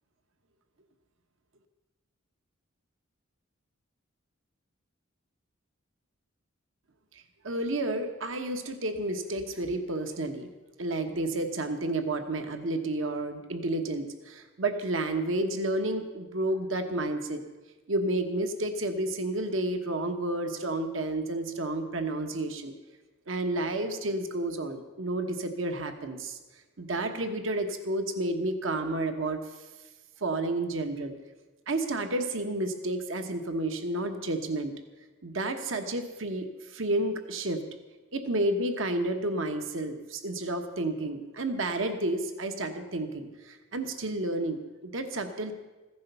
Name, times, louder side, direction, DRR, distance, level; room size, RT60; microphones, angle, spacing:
voice 1, 7.1-10.5 10.8-17.4 17.9-22.7 23.3-26.4 26.8-29.4 30.2-31.1 31.7-34.7 35.2-37.6 38.1-45.5, right 2 dB, 70° right, 7 dB, 1.3 m, -31 dB
15.5 x 10.5 x 6.9 m, 1.2 s
head